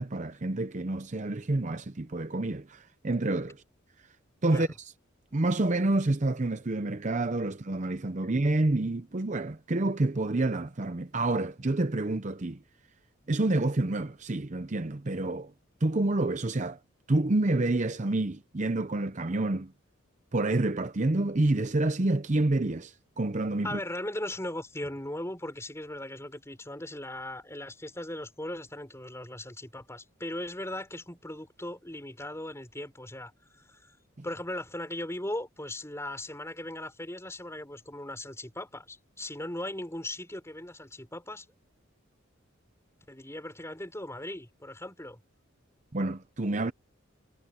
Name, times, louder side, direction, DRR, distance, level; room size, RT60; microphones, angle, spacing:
voice 1, 0.0-3.6 4.4-4.9 5.3-12.6 13.3-15.5 15.8-16.8 17.1-19.7 20.3-23.8 45.9-46.7, right 2 dB, 35° right, 0.7 m, -28 dB
voice 2, 23.6-34.0 34.2-41.5 43.1-45.2, left 1 dB, 15° left, 6.4 m, -38 dB
head